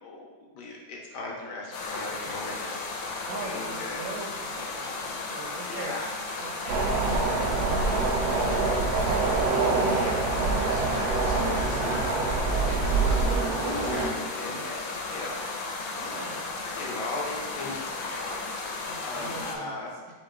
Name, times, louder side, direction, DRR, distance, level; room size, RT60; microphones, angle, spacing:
voice 1, 0.0-2.9 3.3-4.0 5.7-6.1 9.8-12.2 13.7-14.8 15.1-16.3 16.6-19.9, left 2 dB, 65° left, -1 dB, 1.2 m, -38 dB
sound 1, 1.7-19.6, left 3 dB, 85° left, 1.4 m, -35 dB
voice 2, 3.3-6.9 7.3-9.3 12.5-13.4 15.9-16.4 18.8-19.8, right 3 dB, 85° right, -1 dB, 1.7 m, -42 dB
sound 2, 6.7-14.1, right 3 dB, 65° right, 1.0 m, -25 dB
4.1 x 3.6 x 3.6 m, 1.3 s
omnidirectional pair, 2.1 m